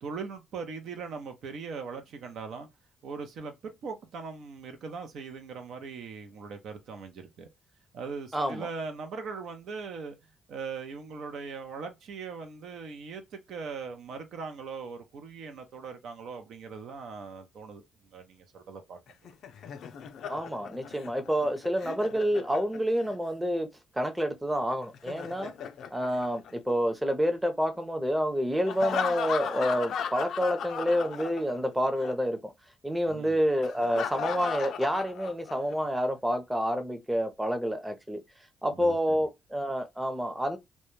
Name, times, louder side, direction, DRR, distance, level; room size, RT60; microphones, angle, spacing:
voice 1, 0.0-2.7 3.0-7.5 7.9-10.2 10.5-17.8 18.1-19.0 33.1-33.4 38.7-39.0, right 5 dB, 70° right, 0.5 m, -40 dB
voice 2, 8.3-8.7 20.3-23.7 23.9-25.5 25.9-32.5 32.8-38.2 38.6-40.6, equal, 10° right, 0.6 m, -28 dB
Laughter, 19.1-23.1 24.8-27.0 28.7-31.7 32.0-32.1 33.6-35.7, left 7 dB, 70° left, 0.4 m, -36 dB
2.2 x 2.1 x 3.0 m
supercardioid pair, 70°, 0 cm